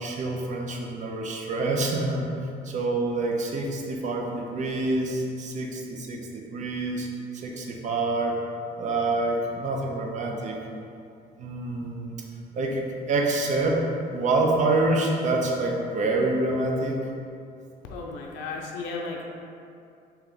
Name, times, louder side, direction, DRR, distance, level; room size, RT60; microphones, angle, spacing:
voice 1, 0.0-2.3 2.6-6.2 6.5-7.1 7.3-8.4 8.8-10.6 11.4-12.2 12.5-13.8 14.1-17.0, right 2 dB, 45° right, 0 dB, 0.6 m, -26 dB
voice 2, 17.9-19.2, left 3 dB, 85° left, -1 dB, 0.4 m, -34 dB
3.3 x 2.9 x 3.7 m, 2.5 s
cardioid pair, 110°, 17 cm